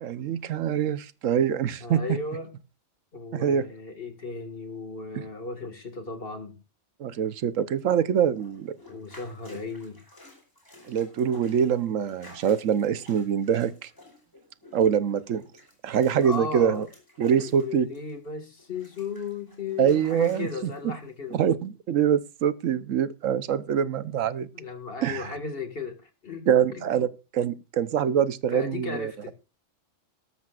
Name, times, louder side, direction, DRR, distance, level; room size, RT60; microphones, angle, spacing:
voice 1, 0.0-2.2 3.3-3.6 5.1-5.2 7.0-8.8 10.9-13.9 14.7-15.4 15.8-16.9 17.2-17.9 19.8-20.5 21.3-24.5 25.0-25.3 26.5-27.1 27.3-29.1, right 8 dB, 90° right, 1.2 m, -24 dB
voice 2, 1.8-2.5 3.1-6.6 8.9-10.0 16.2-16.9 17.4-21.4 24.5-26.8 28.5-29.3, left 4 dB, 50° left, 2.0 m, -35 dB
sound 1, 8.3-18.3 18.6-20.8 21.3-21.4, left 2 dB, 15° left, 4.6 m, -52 dB
19.0 x 12.5 x 2.4 m
omnidirectional pair, 1.3 m